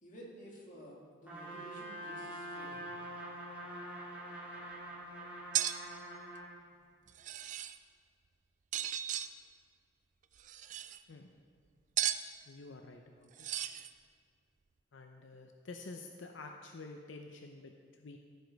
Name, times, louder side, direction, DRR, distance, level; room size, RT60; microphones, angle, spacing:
voice 1, 0.0-2.9, right 1 dB, 45° left, -4 dB, 2.0 m, -52 dB
Trumpet, 1.3-6.5, right 1 dB, 10° right, 1.9 m, -45 dB
sound 1, 5.5-5.8 7.1-7.8 8.7-9.3 10.4-11.0 12.0-12.2 13.4-13.9, right 11 dB, 40° right, 0.3 m, -35 dB
voice 2, 12.5-13.5 14.9-18.2, left 3 dB, 85° left, 4 dB, 0.6 m, -49 dB
14.5 x 5.1 x 4.6 m, 2.1 s
head